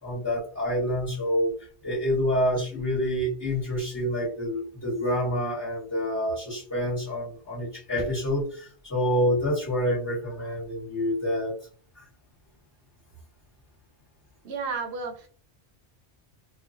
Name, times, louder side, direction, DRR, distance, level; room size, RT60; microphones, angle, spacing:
voice 1, 0.0-1.5 1.8-11.6 11.9-12.0, equal, 15° left, -8 dB, 1.3 m, -27 dB
voice 2, 14.4-15.3, right 4 dB, 70° right, 4 dB, 1.0 m, -32 dB
4.2 x 2.4 x 2.6 m, 0.42 s
omnidirectional pair, 1.2 m